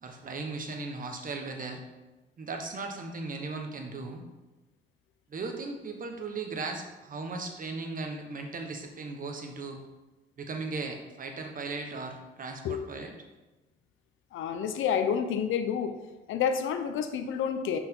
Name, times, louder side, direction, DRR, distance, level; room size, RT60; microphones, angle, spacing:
voice 1, 0.0-1.8 2.4-4.2 5.3-9.8 10.4-13.1, right 3 dB, 45° right, 4 dB, 1.3 m, -37 dB
voice 2, 14.3-15.9 16.3-17.8, left 7 dB, 85° left, 7 dB, 0.8 m, -29 dB
7.7 x 5.9 x 3.8 m, 1.1 s
cardioid pair, 90°, 20 cm